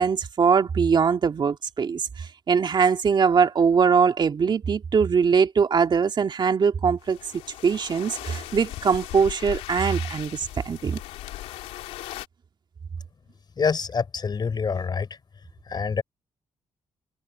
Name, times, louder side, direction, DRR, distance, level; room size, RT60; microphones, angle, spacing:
voice 1, 0.0-7.2 7.6-11.0, right 6 dB, 50° right, 2.1 m, -22 dB
sound 1, 7.0-12.3, left 15 dB, 90° left, 2.8 m, -38 dB
voice 2, 13.6-15.1 15.7-16.0, left 5 dB, 45° left, 4.2 m, -26 dB
supercardioid pair, 65°, 10 cm